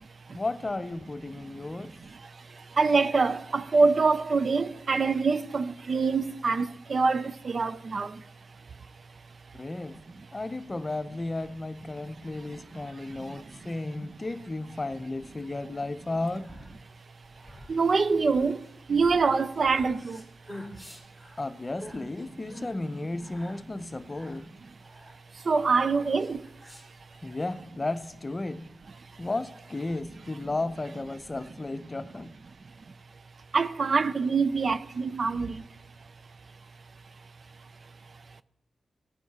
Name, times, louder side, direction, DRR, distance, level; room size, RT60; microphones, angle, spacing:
voice 1, 0.3-1.9 9.5-10.0 10.3-16.5 21.4-24.5 27.2-28.6 29.2-32.3, left 2 dB, 30° left, 0.6 m, -34 dB
voice 2, 2.8-8.1 17.7-18.6 18.9-20.2 25.5-26.4 33.5-35.6, right 4 dB, 55° right, 0.4 m, -25 dB
sound 1, 16.1-27.3, equal, 25° right, 5.1 m, -48 dB
17.0 x 9.0 x 2.9 m
cardioid pair, 55°, 0 cm